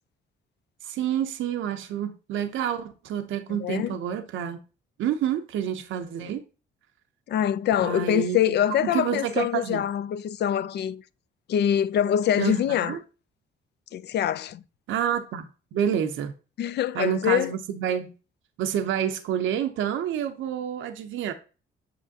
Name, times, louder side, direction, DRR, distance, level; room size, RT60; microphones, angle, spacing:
voice 1, 0.8-4.6 5.0-6.4 7.8-8.4 8.8-9.8 12.4-13.0 14.9-16.3 16.9-18.1 18.6-21.3, right 9 dB, 75° right, 0.7 m, -28 dB
voice 2, 3.5-4.0 7.3-11.0 11.5-13.0 13.9-14.6 16.6-17.5, left 10 dB, 60° left, 0.4 m, -24 dB
7.6 x 6.0 x 2.7 m
cardioid pair, 90°, 20 cm